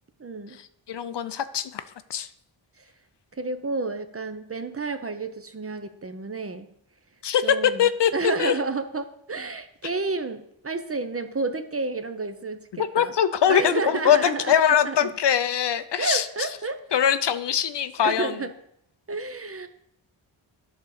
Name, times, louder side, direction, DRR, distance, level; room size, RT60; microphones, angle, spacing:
voice 1, 0.2-0.6 2.8-2.9 3.3-6.7 7.4-13.1 13.5-14.5 14.8-15.1 16.0-16.8 18.0-18.5 19.1-19.7, right 3 dB, 30° right, 8 dB, 0.6 m, -30 dB
voice 2, 0.9-1.8 2.1-2.3 7.2-8.1 8.4-8.6 12.7-16.2 16.9-18.3, left 9 dB, 60° left, 13 dB, 0.5 m, -22 dB
11.0 x 4.0 x 6.4 m, 0.73 s
wide cardioid pair, 160°, 48 cm